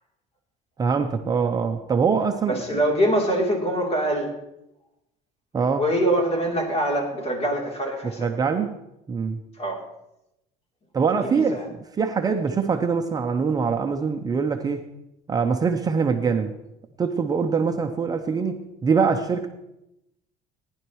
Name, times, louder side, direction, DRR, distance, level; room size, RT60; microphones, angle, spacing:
voice 1, 0.8-2.8 5.5-5.8 8.2-8.7 9.1-9.4 10.9-14.8 15.3-16.6 17.0-19.5, right 5 dB, 25° right, 5 dB, 0.6 m, -23 dB
voice 2, 2.5-4.3 5.8-8.4 9.6-9.8 11.2-11.7, right 1 dB, 40° left, 0 dB, 3.3 m, -24 dB
18.0 x 11.0 x 3.1 m, 0.87 s
cardioid pair, 145°, 16 cm